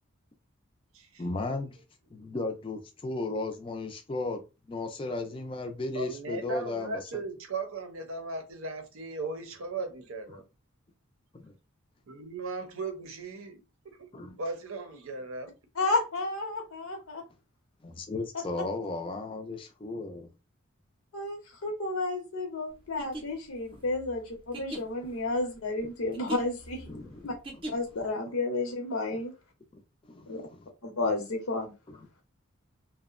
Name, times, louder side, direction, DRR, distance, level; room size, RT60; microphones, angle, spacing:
voice 1, 1.2-1.8 2.1-7.1 10.3-10.4 11.4-11.5 14.1-14.4 17.8-20.3 23.7-23.8 25.8-25.9 26.9-27.4 29.1-29.2 29.7-29.8 30.1-30.7 31.9-32.0, left 2 dB, 25° left, 0.4 m, -35 dB
voice 2, 5.9-10.4 12.1-14.0 14.3-15.5, right 3 dB, 75° right, 0.6 m, -37 dB
voice 3, 15.8-17.2 21.1-26.9 27.2-27.3 27.7-29.3 30.3-30.4 30.8-31.7, left 2 dB, 80° left, 0.8 m, -31 dB
sound 1, 22.8-28.1, right 1 dB, 25° right, 0.5 m, -41 dB
2.6 x 2.1 x 2.4 m
head